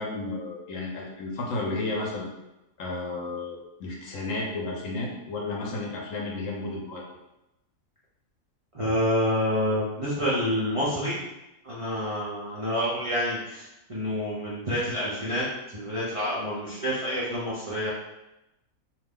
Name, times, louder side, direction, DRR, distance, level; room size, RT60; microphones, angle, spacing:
voice 1, 0.0-2.3 2.8-7.0, left 2 dB, 65° left, -2 dB, 0.9 m, -32 dB
voice 2, 8.7-11.2 11.6-15.5 15.7-17.9, equal, 60° right, -8 dB, 0.3 m, -28 dB
2.6 x 2.3 x 3.5 m, 0.94 s
omnidirectional pair, 1.6 m